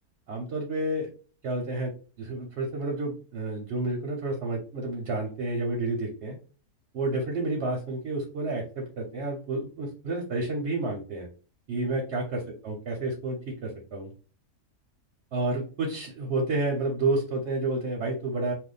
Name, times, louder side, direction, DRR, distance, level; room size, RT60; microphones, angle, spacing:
voice 1, 0.3-1.1 1.4-1.9 2.2-6.4 6.9-11.3 11.7-14.1 15.3-18.5, right 2 dB, 60° right, 1 dB, 0.8 m, -30 dB
2.5 x 2.3 x 3.8 m, 0.39 s
omnidirectional pair, 1.7 m